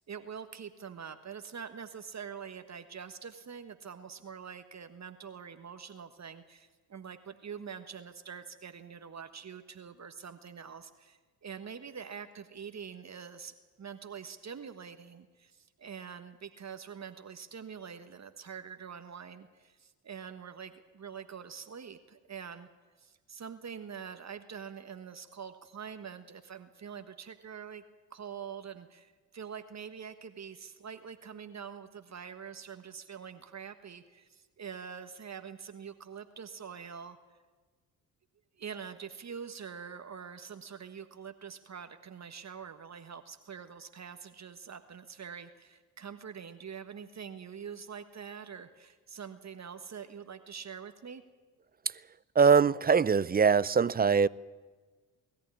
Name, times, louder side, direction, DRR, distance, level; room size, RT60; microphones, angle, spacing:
voice 1, 0.0-22.7 23.0-27.8 28.1-37.2 38.6-51.2, right 7 dB, 40° right, 1.4 m, -45 dB
voice 2, 52.4-54.3, right 6 dB, 25° right, 0.6 m, -22 dB
21.0 x 14.0 x 9.6 m
supercardioid pair, 55°, 41 cm